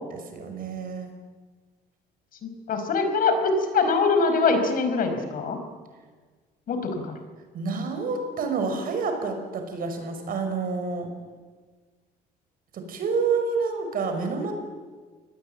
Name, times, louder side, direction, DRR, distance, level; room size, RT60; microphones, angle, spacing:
voice 1, 0.1-1.1 7.5-11.1 12.7-14.5, right 4 dB, 60° right, 6 dB, 5.5 m, -28 dB
voice 2, 2.4-5.6 6.7-7.2, left 4 dB, 55° left, 7 dB, 5.0 m, -23 dB
26.0 x 19.5 x 9.1 m, 1.4 s
cardioid pair, 110°, 17 cm